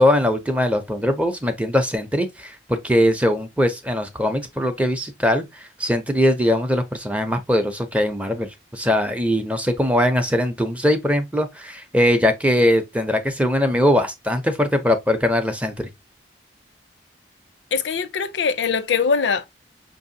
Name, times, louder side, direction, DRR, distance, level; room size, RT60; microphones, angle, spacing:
voice 1, 0.0-5.5 5.8-15.9, left 1 dB, 5° right, 0.5 m, -21 dB
voice 2, 17.7-19.5, left 5 dB, 85° left, 0.5 m, -22 dB
5.4 x 2.7 x 2.6 m
head